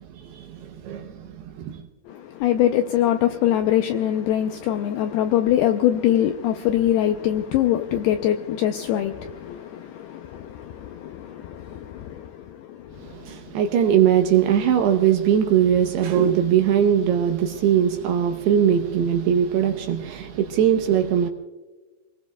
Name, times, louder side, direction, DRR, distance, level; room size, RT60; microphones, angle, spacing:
voice 1, 0.1-1.8 13.0-21.3, right 9 dB, 75° right, 2.6 m, -21 dB
voice 2, 2.1-13.6, left 11 dB, 80° left, 2.3 m, -23 dB
27.0 x 20.5 x 2.3 m
omnidirectional pair, 5.2 m